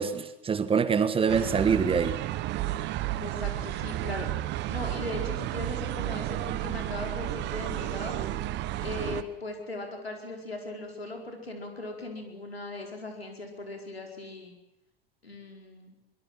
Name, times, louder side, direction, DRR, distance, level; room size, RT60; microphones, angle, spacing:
voice 1, 0.0-2.2, right 6 dB, 20° right, 13 dB, 1.5 m, -25 dB
sound 1, 1.3-9.2, right 14 dB, 35° right, 1.3 m, -32 dB
voice 2, 3.2-4.3 4.7-8.2 8.8-14.5 15.2-16.0, left 2 dB, 80° left, 3 dB, 4.8 m, -38 dB
23.5 x 22.0 x 7.6 m, 0.88 s
figure-of-eight pair, 85°, 30 cm